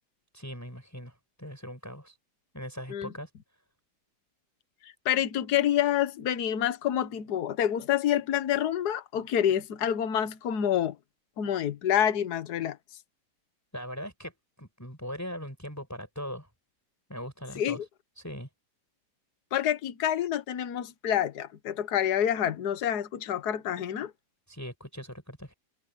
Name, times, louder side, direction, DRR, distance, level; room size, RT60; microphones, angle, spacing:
voice 1, 0.3-2.2 2.5-3.3 13.7-16.5 17.1-17.8 18.2-18.5 24.5-25.5, equal, 10° left, 6.2 m, -40 dB
voice 2, 4.8-10.9 11.4-12.8 17.6-17.8 19.5-24.1, left 10 dB, 60° left, 1.6 m, -27 dB
omnidirectional pair, 2.0 m